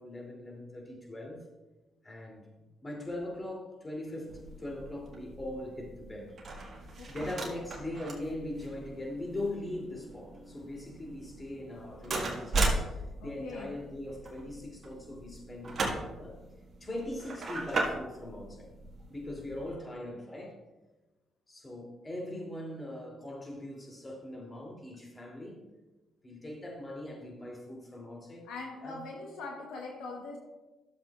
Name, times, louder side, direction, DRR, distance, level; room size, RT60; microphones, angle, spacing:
voice 1, 0.0-1.4 2.0-2.5 2.8-6.4 7.1-16.4 16.8-18.7 19.1-20.6 21.5-25.6 26.2-28.5 28.8-29.0, left 1 dB, 25° left, -1 dB, 2.8 m, -41 dB
sound 1, 4.3-19.7, right 2 dB, 45° right, 1.6 m, -38 dB
voice 2, 7.0-7.4 13.2-13.8 28.5-30.4, left 3 dB, 75° left, 0 dB, 1.1 m, -42 dB
12.5 x 7.3 x 2.4 m, 1.1 s
supercardioid pair, 55°, 0 cm